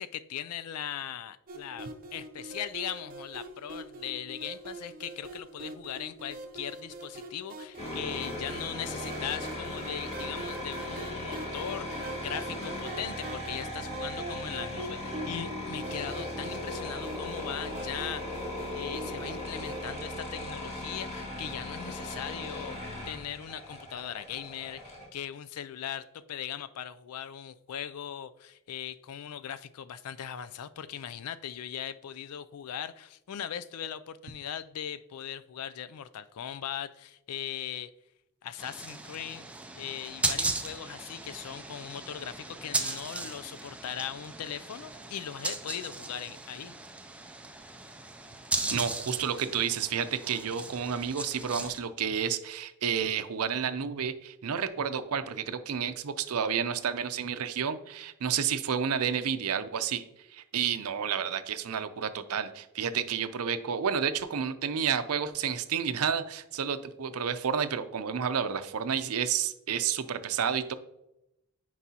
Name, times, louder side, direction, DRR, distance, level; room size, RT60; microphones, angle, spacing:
voice 1, 0.0-37.9 38.4-39.5 39.8-46.7, left 9 dB, 90° left, 14 dB, 0.4 m, -39 dB
sound 1, 1.5-19.9, right 2 dB, 40° right, 0.7 m, -43 dB
sound 2, 7.8-25.0, left 1 dB, 30° left, 2.1 m, -38 dB
sound 3, 38.6-51.8, right 3 dB, 5° right, 0.4 m, -37 dB
voice 2, 48.7-60.0 60.3-70.7, right 7 dB, 80° right, 11 dB, 0.5 m, -30 dB
9.8 x 4.7 x 2.8 m, 0.86 s
head